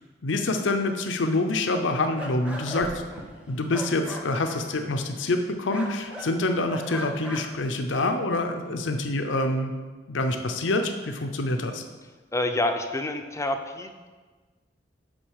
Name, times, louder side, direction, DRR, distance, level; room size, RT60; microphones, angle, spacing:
voice 1, 0.2-2.9 3.5-9.7 10.1-11.8, left 2 dB, 85° left, 6 dB, 0.7 m, -26 dB
sound 1, 2.1-5.4 5.7-6.3 6.7-7.6, equal, 5° right, 0.9 m, -39 dB
sound 2, 2.8-3.3, equal, 85° right, 1.4 m, -41 dB
voice 2, 12.3-13.9, left 1 dB, 15° left, 6 dB, 0.5 m, -27 dB
6.2 x 5.3 x 6.4 m, 1.4 s
head